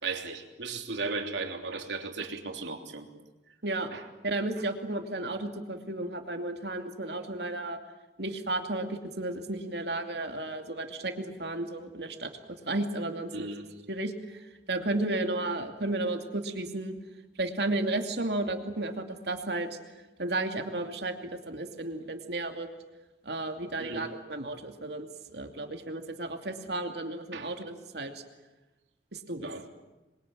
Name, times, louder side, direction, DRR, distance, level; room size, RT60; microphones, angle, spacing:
voice 1, 0.0-3.1 3.9-4.0 13.3-13.6 23.8-24.1 27.3-27.5 29.4-29.7, right 3 dB, 85° right, 4 dB, 3.3 m, -36 dB
voice 2, 4.2-7.8 8.2-12.3 12.7-13.5 13.9-17.0 17.4-19.7 20.2-22.7 23.2-25.1 25.3-28.2 29.1-29.5, right 2 dB, 65° right, 5 dB, 2.6 m, -33 dB
27.0 x 22.5 x 9.0 m, 1.1 s
head